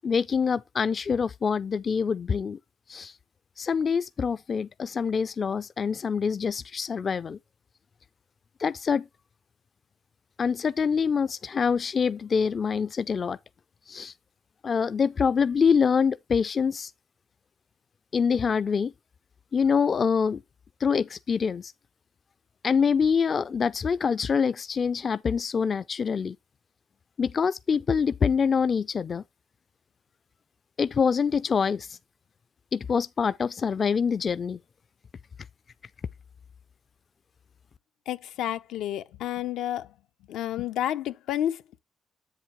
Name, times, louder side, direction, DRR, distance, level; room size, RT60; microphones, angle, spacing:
voice 1, 0.0-2.6 2.9-3.1 3.6-7.4 8.6-9.1 10.4-13.4 13.9-14.1 14.6-16.9 18.1-18.9 19.5-20.4 20.8-21.7 22.6-26.4 27.2-29.2 30.8-32.0 32.7-34.6, left 6 dB, 45° left, 0.4 m, -25 dB
voice 2, 38.1-39.9 40.3-41.8, left 11 dB, 85° left, 0.7 m, -30 dB
7.8 x 7.3 x 3.0 m
cardioid pair, 90°, 0 cm